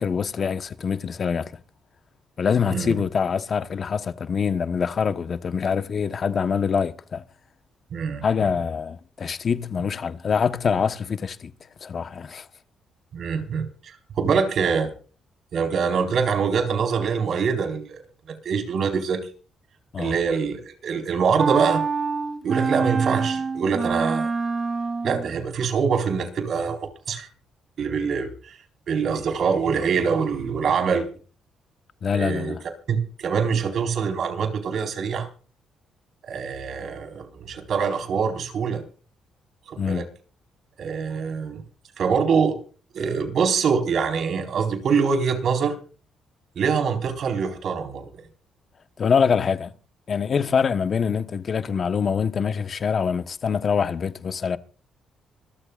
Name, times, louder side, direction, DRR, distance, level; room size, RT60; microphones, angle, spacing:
voice 1, 0.0-1.5 2.4-7.2 8.2-11.5 11.8-12.5 19.9-20.2 32.0-32.6 39.8-40.1 49.0-49.7 50.1-54.6, left 6 dB, 45° left, 1.1 m, -24 dB
voice 2, 7.9-8.5 13.1-14.9 15.5-18.0 18.4-19.2 20.0-21.8 22.4-24.3 25.0-27.3 27.8-28.5 28.9-31.1 32.1-32.5 32.9-35.3 36.3-38.8 39.7-40.1 40.8-41.6 42.0-42.6 42.9-45.8 46.6-48.1, right 6 dB, 60° right, 4.4 m, -24 dB
sound 1, 21.4-25.3, right 4 dB, 40° right, 2.9 m, -26 dB
26.0 x 13.5 x 2.5 m
cardioid pair, 90°, 0 cm